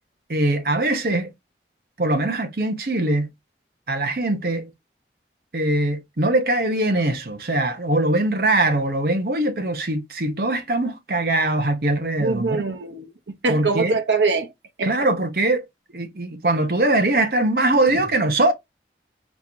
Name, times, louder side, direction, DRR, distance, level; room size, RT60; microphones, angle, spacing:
voice 1, 0.3-1.3 2.0-3.3 3.9-4.7 5.5-12.6 13.5-14.0 14.8-15.6 15.9-18.5, right 2 dB, 55° right, 0.8 m, -22 dB
voice 2, 12.2-14.5 14.8-15.1 17.9-18.1, right 3 dB, 85° right, 0.9 m, -23 dB
4.4 x 2.9 x 3.4 m
head